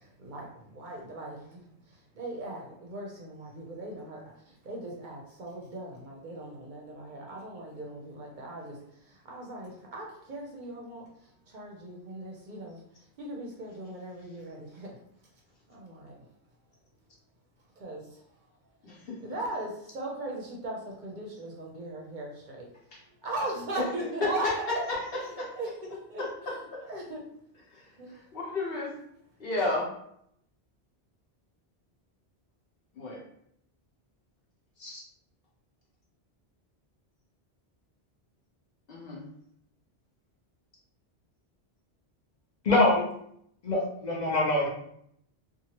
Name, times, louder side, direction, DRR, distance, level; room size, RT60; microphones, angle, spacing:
voice 1, 0.0-1.6 2.2-8.8 9.0-11.1 11.5-12.8 13.2-14.9 15.7-16.2 17.8-18.2 19.2-22.7 23.2-24.4 25.2-25.7 26.1-26.6 26.9-27.3 28.0-28.1, right 2 dB, 55° right, -1 dB, 0.7 m, -39 dB
voice 2, 18.8-19.2 22.9-23.0 23.8-23.9 24.2-25.0 25.4-25.5 26.7-26.8 27.7-27.9 28.1-28.9 29.4-29.9 32.9-33.2 38.9-39.2, left 2 dB, 65° left, -4 dB, 1.1 m, -31 dB
voice 3, 42.6-43.0 43.6-44.7, left 2 dB, 45° left, -4 dB, 0.8 m, -24 dB
2.8 x 2.4 x 2.8 m, 0.70 s
omnidirectional pair, 1.1 m